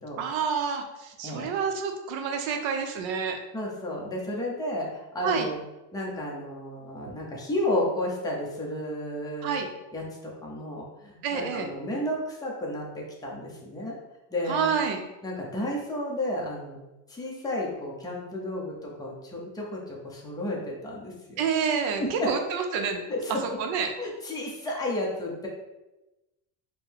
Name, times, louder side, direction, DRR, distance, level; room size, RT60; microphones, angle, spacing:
voice 1, 0.2-3.4 5.2-5.5 9.4-9.7 11.2-11.7 14.5-15.0 21.4-23.0 23.6-23.9, right 6 dB, 70° right, 5 dB, 0.7 m, -28 dB
voice 2, 3.5-5.6 5.9-9.6 9.9-13.9 14.3-14.7 15.2-16.8 17.1-21.4 22.0-22.3 23.1-23.4 24.0-25.5, left 1 dB, 10° left, -3 dB, 0.6 m, -32 dB
4.5 x 2.2 x 3.4 m, 1.0 s
cardioid pair, 140°, 49 cm